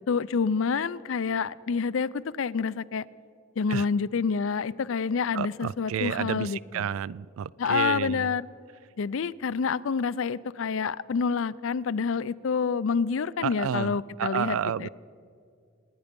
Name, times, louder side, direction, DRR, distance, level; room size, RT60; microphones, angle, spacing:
voice 1, 0.0-3.1 3.6-6.9 7.6-8.5 9.0-14.9, left 5 dB, 70° left, 18 dB, 0.4 m, -28 dB
voice 2, 5.3-8.3 13.4-14.9, right 8 dB, 80° right, 22 dB, 0.3 m, -31 dB
28.0 x 9.8 x 5.3 m, 2.3 s
head